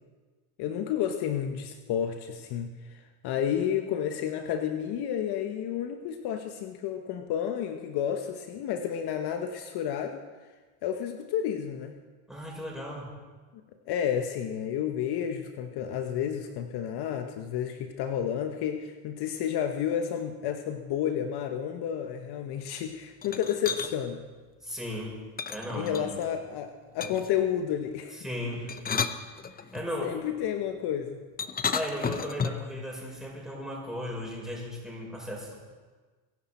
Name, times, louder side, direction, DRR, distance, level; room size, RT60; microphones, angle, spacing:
voice 1, 0.6-10.2 10.8-12.0 13.9-24.2 25.7-28.2 30.0-31.2, left 9 dB, 55° left, 6 dB, 1.2 m, -31 dB
voice 2, 12.3-13.1 24.6-25.2 25.5-26.2 28.2-28.7 29.7-30.1 31.7-35.5, equal, ahead, -3 dB, 6.3 m, -36 dB
sound 1, 23.2-23.9 25.4-26.3 27.0-27.4 28.5-29.9 31.4-32.7, left 6 dB, 20° left, 0.8 m, -32 dB
23.0 x 11.0 x 4.4 m, 1.4 s
supercardioid pair, 105°, 46 cm